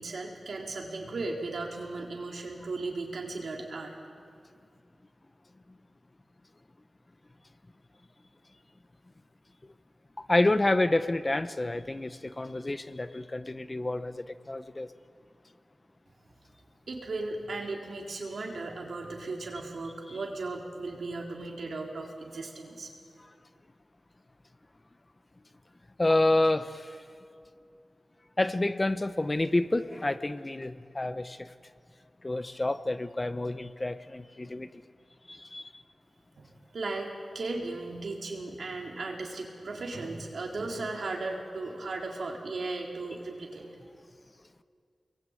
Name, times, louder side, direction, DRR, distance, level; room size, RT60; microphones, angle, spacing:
voice 1, 0.0-3.9 16.9-22.9 36.4-37.1 37.3-43.7, right 3 dB, 80° right, 0 dB, 4.1 m, -36 dB
voice 2, 10.2-14.9 26.0-27.0 28.4-31.5 32.2-34.7 35.3-35.7, left 2 dB, 25° left, 12 dB, 0.9 m, -28 dB
29.5 x 22.0 x 9.1 m, 2.4 s
wide cardioid pair, 105°, 0 cm